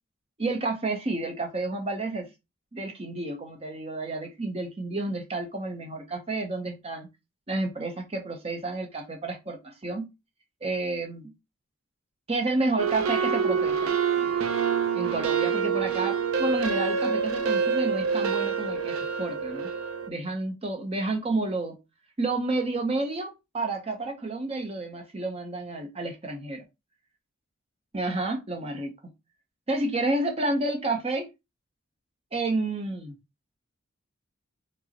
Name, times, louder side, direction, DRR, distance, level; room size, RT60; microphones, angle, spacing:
voice 1, 0.4-2.3 2.7-7.1 7.5-10.1 10.6-11.3 12.3-14.3 14.9-19.7 20.1-21.8 22.2-26.6 27.9-28.9 29.7-31.3 32.3-33.1, right 2 dB, 30° right, 0.6 m, -30 dB
sound 1, 12.8-20.1, right 6 dB, 85° right, 0.5 m, -26 dB
4.9 x 2.0 x 2.8 m
head